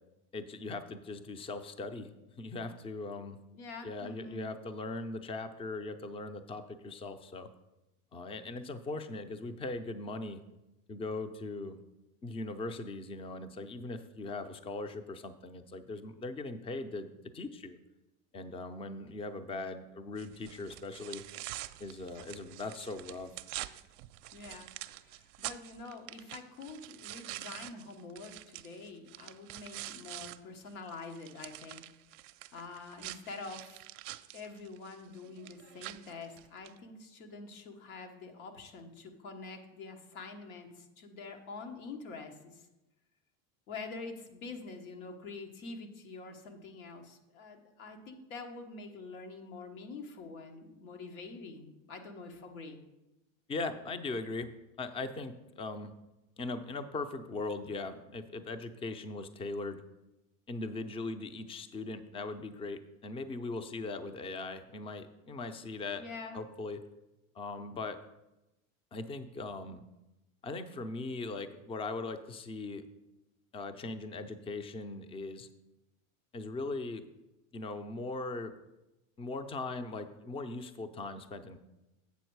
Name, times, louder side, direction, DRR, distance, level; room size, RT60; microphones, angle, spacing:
voice 1, 0.3-3.4 3.8-7.5 8.1-10.4 10.9-11.8 12.2-17.8 18.3-21.2 21.8-23.3 53.5-54.5 54.8-55.9 56.4-59.8 60.5-66.0 66.3-66.8 67.4-68.0 68.9-69.8 70.4-72.8 73.5-75.5 76.3-77.1 77.5-78.5 79.2-81.6, left 3 dB, 15° left, 10 dB, 0.5 m, -39 dB
voice 2, 3.5-4.5 24.3-24.7 25.0-31.8 32.5-33.8 34.3-42.7 43.7-52.8 66.0-66.4, left 3 dB, 80° left, 4 dB, 1.4 m, -46 dB
sound 1, 20.2-30.4 30.7-36.8, right 17 dB, 65° right, 0.5 m, -46 dB
8.1 x 6.2 x 4.6 m, 0.97 s
supercardioid pair, 105°, 42 cm